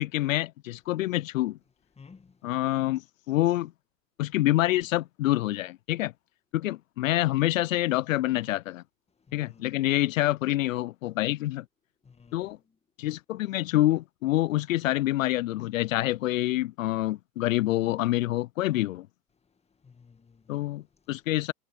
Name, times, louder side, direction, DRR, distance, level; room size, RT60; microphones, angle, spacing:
voice 1, 0.0-1.6 2.4-3.7 4.2-6.1 6.5-8.8 9.3-11.6 12.3-12.6 13.0-19.1 20.5-21.5, left 16 dB, 80° left, 0.5 m, -27 dB
voice 2, 2.0-2.4 9.3-9.7 12.0-12.6 19.8-20.7, left 5 dB, 15° left, 1.5 m, -54 dB
hypercardioid pair, 85°, 39 cm